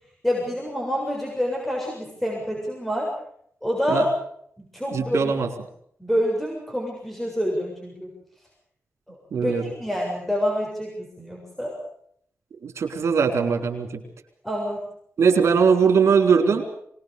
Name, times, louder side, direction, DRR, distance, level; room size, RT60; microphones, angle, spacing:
voice 1, 0.2-3.1 3.6-4.1 4.7-5.3 6.0-8.1 9.1-11.8 14.4-14.8, equal, 5° left, -2 dB, 7.2 m, -27 dB
voice 2, 4.9-5.5 9.3-9.6 12.6-14.0 15.2-16.6, right 6 dB, 80° right, 4 dB, 4.1 m, -20 dB
24.5 x 20.5 x 6.9 m, 0.67 s
wide cardioid pair, 120°, 5 cm